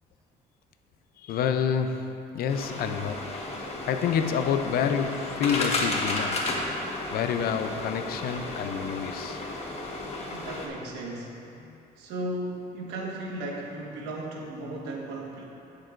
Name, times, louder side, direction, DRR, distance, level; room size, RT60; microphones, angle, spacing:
voice 1, 1.2-3.4 3.9-6.5 7.1-9.4, left 7 dB, 65° left, 8 dB, 0.6 m, -28 dB
sound 1, 2.5-10.7, left 2 dB, 35° left, 1.3 m, -33 dB
voice 2, 10.3-11.4 12.0-15.4, right 1 dB, 85° right, -1 dB, 1.5 m, -35 dB
16.0 x 6.6 x 2.5 m, 2.8 s
cardioid pair, 110°, 17 cm